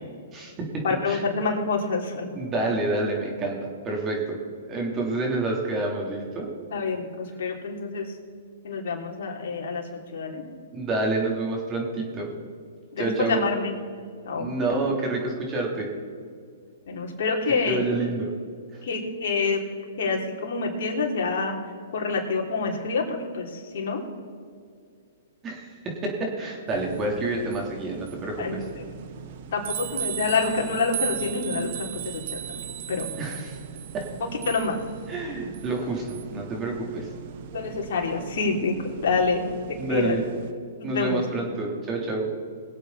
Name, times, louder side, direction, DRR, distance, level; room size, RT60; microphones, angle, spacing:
voice 1, 0.3-1.2 2.4-3.6 3.9-4.4 4.7-6.5 10.7-12.3 13.0-13.4 14.4-15.9 17.5-18.3 18.7-18.8 25.4-28.6 33.2-33.6 33.9-34.1 35.1-37.1 39.8-40.3 40.8-42.3, right 2 dB, 25° right, -1 dB, 3.4 m, -28 dB
voice 2, 0.8-2.4 6.7-8.2 8.6-10.4 12.9-13.7 14.2-14.5 16.9-17.8 18.8-19.6 20.0-21.5 21.9-24.0 28.4-28.8 29.2-32.6 32.9-33.1 34.5-34.8 37.5-40.2 40.8-41.2, left 4 dB, 60° left, -1 dB, 3.3 m, -27 dB
sound 1, 26.7-40.5, right 10 dB, 55° right, 1.2 m, -38 dB
22.0 x 8.2 x 4.2 m, 2.2 s
hypercardioid pair, 130°, 0 cm